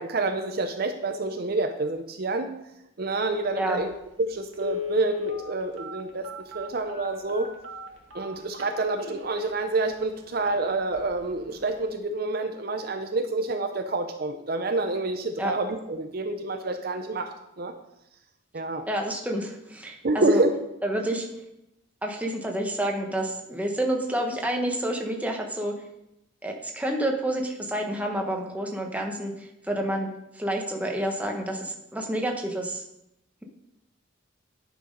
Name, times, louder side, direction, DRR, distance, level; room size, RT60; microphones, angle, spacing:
voice 1, 0.0-2.5 3.0-7.5 8.1-17.7 18.5-18.9 20.0-20.5, right 2 dB, 50° right, 6 dB, 0.6 m, -28 dB
Telephone, 3.8-3.9 4.5-9.4 9.9-10.0 10.4-10.6 10.9-11.2 11.6-11.7, left 5 dB, 75° right, 1.8 m, -35 dB
voice 2, 18.9-20.4 20.8-21.3 22.0-25.7 26.4-32.8, right 1 dB, 5° right, 1 dB, 1.1 m, -29 dB
9.8 x 6.1 x 5.2 m, 0.85 s
head